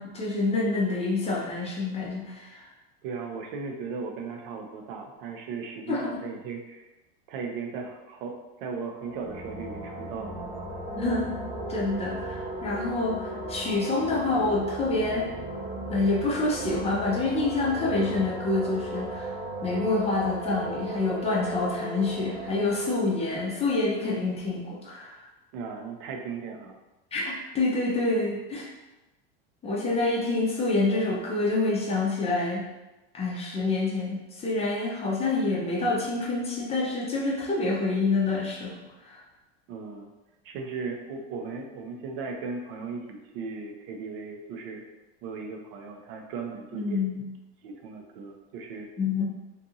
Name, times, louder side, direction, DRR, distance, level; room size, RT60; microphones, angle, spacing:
voice 1, 0.0-2.6 5.9-6.1 10.9-11.4 11.7-15.3 15.9-19.3 19.6-25.2 27.1-28.7 29.6-32.7 33.1-38.7 39.0-39.2 46.7-47.3 49.0-49.2, left 3 dB, 20° left, -3 dB, 0.5 m, -27 dB
voice 2, 3.0-6.9 7.3-10.4 25.5-26.8 39.7-40.1 40.4-44.8 45.2-47.0 47.6-48.9, right 4 dB, 65° right, 3 dB, 0.5 m, -37 dB
sound 1, 9.0-24.5, right 1 dB, 30° right, 0.7 m, -36 dB
2.6 x 2.5 x 2.7 m, 1.1 s
supercardioid pair, 130°, 31 cm